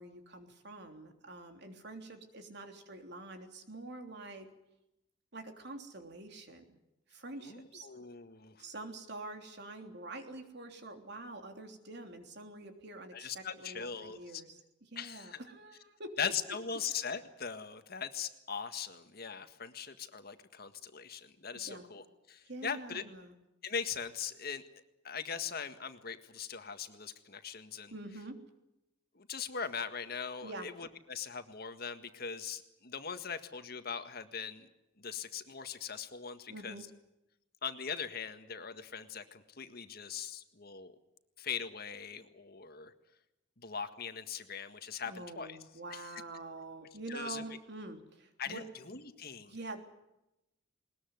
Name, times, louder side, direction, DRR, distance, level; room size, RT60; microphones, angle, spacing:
voice 1, 0.0-4.5 5.3-6.7 7.1-7.9 8.6-16.2 21.5-21.9 22.5-23.3 27.9-28.4 30.4-30.7 36.5-36.9 45.0-48.7 49.5-49.8, right 2 dB, 60° right, 5 dB, 3.3 m, -46 dB
voice 2, 7.4-8.6 13.1-14.4 14.9-15.4 16.2-23.0 23.6-24.6 25.0-27.9 29.1-34.7 35.0-36.8 37.6-40.9 41.4-42.9 43.6-45.6 45.9-46.2 47.1-47.5 48.4-49.5, left 6 dB, 55° left, 9 dB, 1.8 m, -40 dB
20.5 x 20.5 x 9.5 m, 0.90 s
head